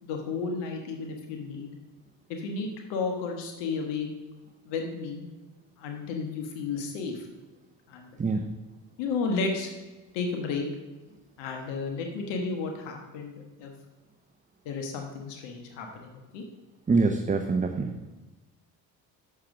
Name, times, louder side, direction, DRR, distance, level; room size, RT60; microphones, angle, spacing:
voice 1, 0.0-1.7 2.3-4.1 4.6-5.2 5.8-7.3 7.9-8.2 9.0-9.7 10.1-10.7 11.4-13.7 14.6-16.4, left 4 dB, 85° left, 3 dB, 1.4 m, -33 dB
voice 2, 8.2-8.5 16.9-17.9, right 4 dB, 20° right, 5 dB, 0.7 m, -25 dB
7.4 x 6.5 x 6.0 m, 1.2 s
supercardioid pair, 70°, 41 cm